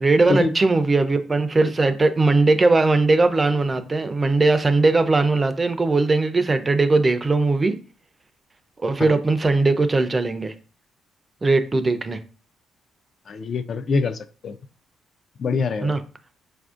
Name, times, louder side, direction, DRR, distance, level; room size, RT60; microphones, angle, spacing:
voice 1, 0.0-7.7 8.8-10.5 11.4-12.2 15.8-16.0, right 3 dB, 25° right, 0.4 m, -19 dB
voice 2, 13.3-14.6 15.4-16.0, left 4 dB, 55° left, 0.3 m, -24 dB
4.1 x 2.5 x 2.4 m
cardioid pair, 90°, 0 cm